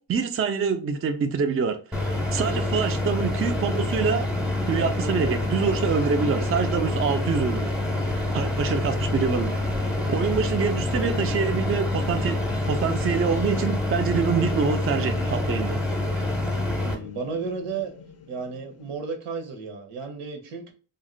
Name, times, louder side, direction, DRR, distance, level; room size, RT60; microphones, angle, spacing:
voice 1, 0.1-2.0 2.3-4.3 4.7-7.7 8.1-9.5 10.1-12.4 12.7-15.8, right 6 dB, 30° right, 0.4 m, -25 dB
sound 1, 1.9-16.9, left 2 dB, ahead, 0.7 m, -26 dB
sound 2, 7.2-19.0, left 4 dB, 35° left, 0.4 m, -43 dB
voice 2, 16.8-17.9 18.3-20.7, right 5 dB, 90° right, 0.9 m, -33 dB
2.5 x 2.1 x 3.7 m
cardioid pair, 90°, 48 cm